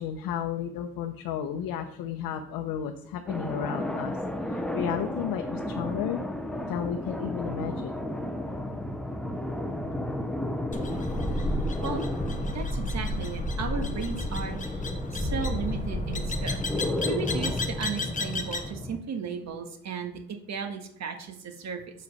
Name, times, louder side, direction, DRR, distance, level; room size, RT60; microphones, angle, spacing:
voice 1, 0.0-6.2 6.7-8.0, left 9 dB, 75° left, 5 dB, 0.8 m, -33 dB
sound 1, 3.3-19.0, left 1 dB, ahead, 0.7 m, -33 dB
sound 2, 10.7-18.7, left 1 dB, 20° left, 1.1 m, -32 dB
voice 2, 12.5-14.8 15.1-16.6 17.0-20.2 20.5-21.8, right 5 dB, 50° right, 5 dB, 1.5 m, -35 dB
6.6 x 5.0 x 5.4 m, 0.66 s
supercardioid pair, 85°, 35 cm